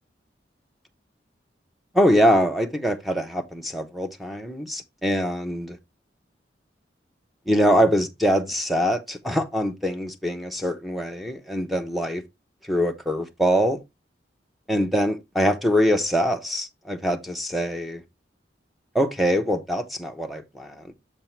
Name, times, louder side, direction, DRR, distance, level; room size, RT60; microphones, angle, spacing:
voice 1, 1.9-5.8 7.5-12.2 12.7-13.8 14.7-18.0 18.9-20.9, equal, ahead, 0.8 m, -23 dB
7.2 x 3.7 x 4.4 m
head